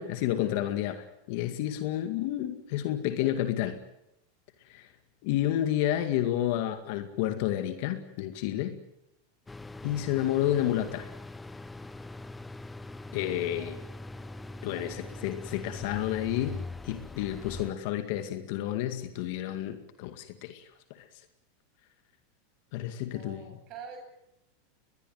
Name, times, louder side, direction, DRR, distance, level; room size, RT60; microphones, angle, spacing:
voice 1, 0.0-3.8 4.7-4.9 5.2-8.8 9.8-11.1 13.1-13.8 14.6-20.7 21.0-21.1 22.7-23.4, left 12 dB, 60° left, 8 dB, 2.1 m, -30 dB
sound 1, 9.5-17.7, left 2 dB, 10° left, 0.9 m, -42 dB
voice 2, 13.4-13.9 14.8-14.9 23.0-24.0, right 6 dB, 45° right, 5 dB, 7.9 m, -47 dB
23.0 x 20.5 x 9.2 m, 0.86 s
supercardioid pair, 125°, 0 cm